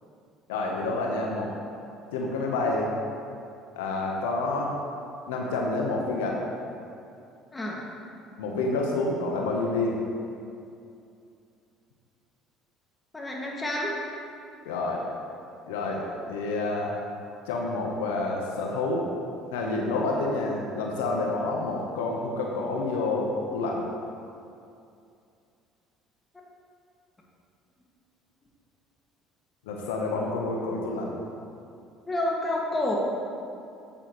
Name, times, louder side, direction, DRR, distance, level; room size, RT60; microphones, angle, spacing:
voice 1, 0.5-1.5 2.1-2.9 3.8-4.8 5.3-6.4 8.4-10.0 14.6-15.0 15.7-17.0 17.5-19.1 19.5-23.8 29.7-31.2, left 2 dB, 90° left, -1 dB, 0.9 m, -28 dB
voice 2, 7.5-7.8 13.1-13.9 32.1-33.0, left 1 dB, 20° left, -3 dB, 1.9 m, -29 dB
8.8 x 8.0 x 3.1 m, 2.5 s
supercardioid pair, 80°, 0 cm